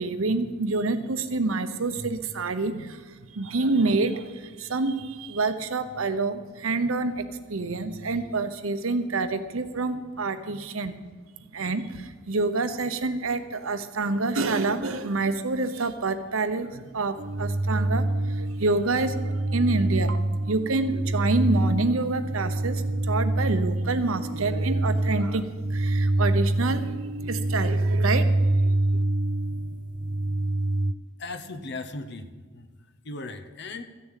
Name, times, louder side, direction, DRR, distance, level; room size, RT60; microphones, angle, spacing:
voice 1, 0.0-11.0 11.5-29.0, right 3 dB, 85° right, 10 dB, 0.9 m, -27 dB
sound 1, 17.2-30.9, right 1 dB, 40° right, 0.4 m, -26 dB
voice 2, 31.2-33.8, left 3 dB, 55° left, 10 dB, 0.9 m, -38 dB
13.5 x 6.9 x 9.0 m, 1.4 s
head